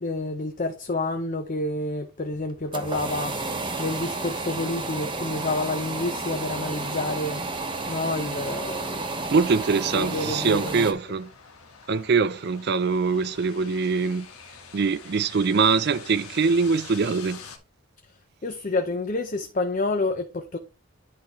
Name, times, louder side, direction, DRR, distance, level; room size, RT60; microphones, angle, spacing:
voice 1, 0.0-3.3 3.8-7.4 7.9-9.2 9.9-10.9 18.4-20.6, left 2 dB, 35° left, 0.6 m, -29 dB
sound 1, 2.4-10.9, right 3 dB, 20° right, 1.0 m, -31 dB
sound 2, 3.7-17.6, left 5 dB, 90° left, 1.5 m, -47 dB
voice 2, 9.3-11.3 11.9-14.3 14.7-17.4, right 4 dB, 50° right, 0.4 m, -23 dB
10.5 x 5.2 x 3.1 m
head